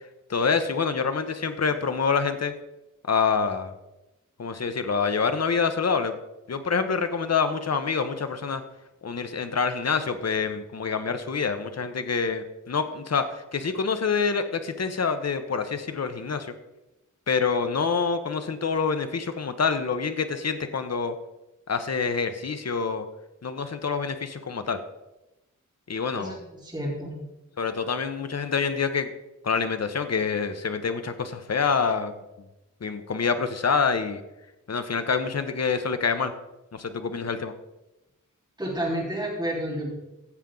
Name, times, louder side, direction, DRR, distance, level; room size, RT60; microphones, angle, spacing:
voice 1, 0.3-2.5 3.1-3.7 4.4-6.1 6.5-8.6 9.0-16.5 17.3-21.1 21.7-23.0 23.4-24.8 25.9-26.4 27.6-29.1 29.4-32.1 32.8-34.2 34.7-36.3 36.7-37.5, left 5 dB, 55° left, 9 dB, 0.9 m, -26 dB
voice 2, 26.1-27.2 38.6-39.9, right 1 dB, 15° right, -5 dB, 3.9 m, -30 dB
16.0 x 7.4 x 3.8 m, 0.95 s
wide cardioid pair, 95°, 31 cm